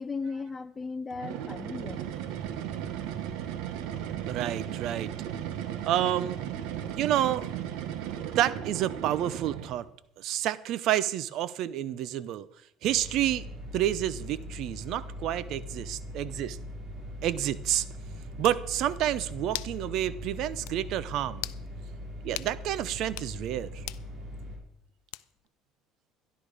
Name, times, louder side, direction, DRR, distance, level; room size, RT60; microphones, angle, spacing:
voice 1, 0.0-2.0, left 4 dB, 20° left, 0.7 m, -36 dB
sound 1, 1.1-9.9, right 10 dB, 80° right, 1.3 m, -36 dB
voice 2, 4.3-5.1 5.8-6.4 6.9-7.5 8.2-9.9 10.2-12.5 12.8-13.5 13.7-16.6 17.2-17.9 18.4-21.4 22.2-23.8, right 12 dB, 60° right, 0.7 m, -29 dB
sound 2, 12.9-24.6, left 1 dB, 35° right, 4.7 m, -41 dB
sound 3, 18.0-18.1 18.4-18.6 19.5-19.8 20.2-20.3 20.7-20.8 21.4-21.6 22.4-22.5 23.1-23.3 23.9-24.1 25.1-25.5, left 21 dB, 85° left, 0.5 m, -38 dB
13.0 x 11.5 x 4.9 m
cardioid pair, 130°, 0 cm